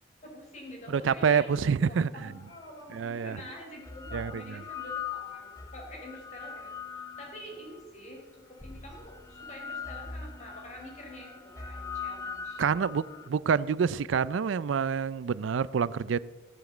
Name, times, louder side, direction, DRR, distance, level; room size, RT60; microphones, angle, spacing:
voice 1, 0.3-12.7, left 1 dB, 35° left, 4.0 m, -47 dB
voice 2, 0.9-2.3 2.9-3.4 4.1-4.4 12.6-16.2, right 6 dB, 85° right, 0.4 m, -27 dB
sound 1, 2.5-2.6 3.6-7.8 8.6-13.3, left 6 dB, 15° left, 0.6 m, -41 dB
15.5 x 7.2 x 7.6 m
head